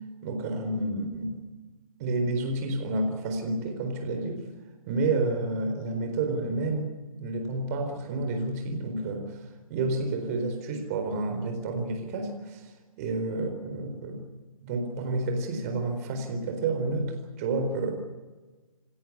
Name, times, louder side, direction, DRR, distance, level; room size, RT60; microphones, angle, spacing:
voice 1, 0.2-1.3 2.0-4.4 4.9-6.9 7.2-9.4 9.7-12.7 13.0-14.2 14.6-17.9, right 2 dB, 25° right, 5 dB, 4.3 m, -30 dB
28.0 x 14.0 x 9.5 m, 1.3 s
figure-of-eight pair, 140°, 18 cm